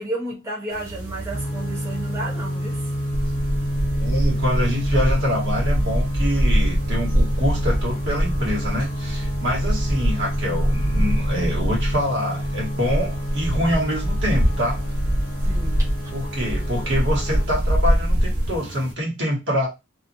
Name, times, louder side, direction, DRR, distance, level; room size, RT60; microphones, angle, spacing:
voice 1, 0.0-2.9 15.4-15.9, right 1 dB, 15° right, 0.8 m, -32 dB
sound 1, 0.7-18.9, right 2 dB, 90° right, 0.8 m, -38 dB
sound 2, 1.3-17.5, equal, 50° left, 0.5 m, -29 dB
sound 3, 3.1-12.0 12.4-18.6, equal, 20° left, 0.9 m, -23 dB
voice 2, 3.9-14.8 16.1-19.7, equal, 55° right, 1.2 m, -25 dB
2.9 x 2.4 x 2.5 m
head